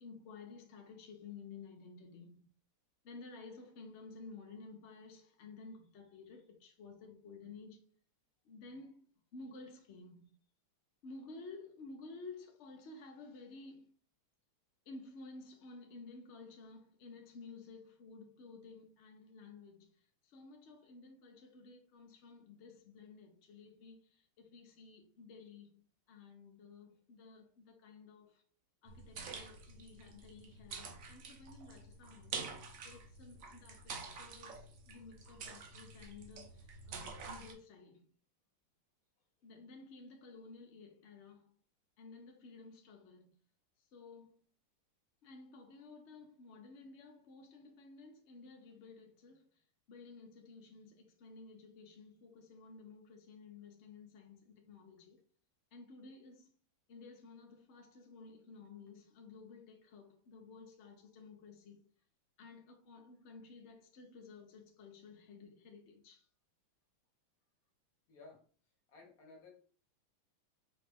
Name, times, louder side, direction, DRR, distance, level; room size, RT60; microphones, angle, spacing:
voice 1, 0.0-2.5 3.0-7.8 8.4-9.1 9.3-10.3 11.0-13.9 14.9-28.4 28.8-38.1 39.4-41.6 42.0-43.3 43.9-44.4 45.2-49.5 49.9-55.2 55.7-56.5 56.9-61.8 62.4-66.3, left 4 dB, 90° left, 0.6 m, -54 dB
sound 1, 28.9-37.5, right 4 dB, 75° right, 0.7 m, -48 dB
voice 2, 68.1-68.4 68.9-69.6, left 3 dB, 50° left, 1.5 m, -56 dB
5.2 x 2.5 x 3.4 m
omnidirectional pair, 2.3 m